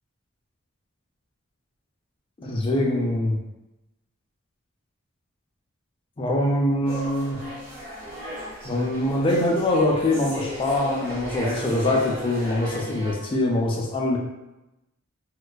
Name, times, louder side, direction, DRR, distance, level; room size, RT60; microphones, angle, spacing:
voice 1, 2.4-3.4 6.2-7.4 8.6-14.2, left 1 dB, 25° left, -1 dB, 0.3 m, -23 dB
sound 1, 6.8-13.1, equal, 30° right, 1.4 m, -36 dB
2.4 x 2.2 x 2.2 m, 0.96 s
head